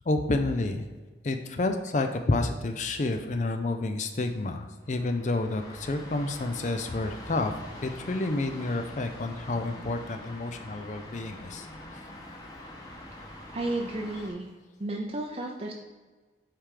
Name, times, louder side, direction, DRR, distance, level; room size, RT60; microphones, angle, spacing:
voice 1, 0.1-0.9 1.2-7.5 7.8-11.7, left 2 dB, 45° left, 6 dB, 0.5 m, -29 dB
sound 1, 3.0-14.3, left 1 dB, 20° left, 1.1 m, -45 dB
voice 2, 13.5-14.5 14.8-15.7, right 2 dB, 35° right, 0 dB, 0.6 m, -32 dB
8.9 x 3.4 x 4.9 m, 1.3 s
head